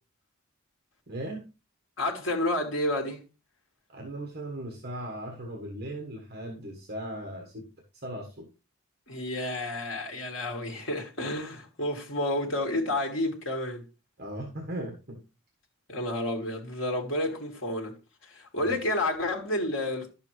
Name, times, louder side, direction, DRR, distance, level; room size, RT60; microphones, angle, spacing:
voice 1, 1.1-1.5 3.9-7.7 8.0-8.5 14.2-15.2 18.5-18.8, right 1 dB, 45° right, 1.4 m, -38 dB
voice 2, 2.0-3.2 9.1-13.8 15.9-20.1, left 1 dB, 65° left, 1.9 m, -30 dB
11.0 x 6.9 x 3.2 m
head